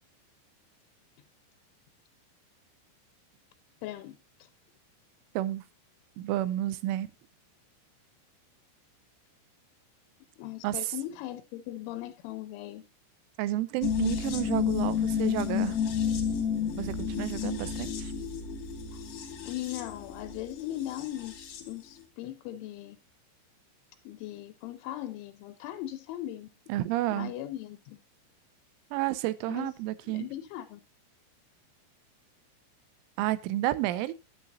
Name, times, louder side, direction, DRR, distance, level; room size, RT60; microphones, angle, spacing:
voice 1, 3.8-4.2 10.4-12.8 18.9-23.0 24.1-26.5 27.1-28.0 29.5-29.7 30.0-30.8, left 13 dB, 85° left, 2.9 m, -39 dB
voice 2, 6.2-7.1 10.6-10.9 13.4-15.8 16.8-18.1 26.7-27.3 28.9-30.3 33.2-34.1, right 15 dB, 85° right, 3.0 m, -31 dB
sound 1, 13.8-21.7 22.0-22.1, left 7 dB, 65° left, 1.7 m, -31 dB
9.4 x 9.1 x 2.7 m
omnidirectional pair, 5.6 m